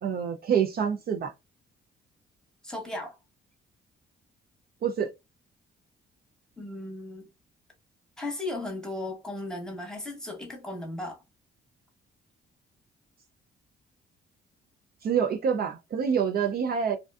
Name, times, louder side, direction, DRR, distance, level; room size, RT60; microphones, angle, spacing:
voice 1, 0.0-1.3 4.8-5.1 15.0-17.0, right 7 dB, 50° right, 0.4 m, -26 dB
voice 2, 2.6-3.2 6.6-7.3 8.2-11.2, left 2 dB, 5° left, 1.0 m, -36 dB
2.5 x 2.2 x 2.3 m
cardioid pair, 90°, 20 cm